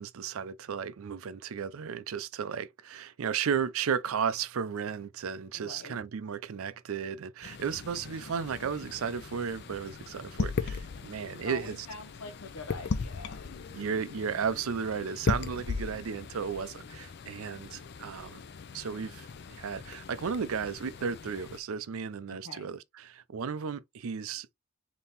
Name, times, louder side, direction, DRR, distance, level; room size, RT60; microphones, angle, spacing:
voice 1, 0.0-11.8 13.7-18.4 18.7-19.3 19.6-24.5, right 6 dB, 70° right, 0.4 m, -34 dB
voice 2, 5.5-6.0 11.4-13.8 22.3-22.7, left 3 dB, 75° left, 0.7 m, -45 dB
sound 1, 7.4-21.6, left 4 dB, 45° left, 0.4 m, -38 dB
3.5 x 2.9 x 4.0 m
head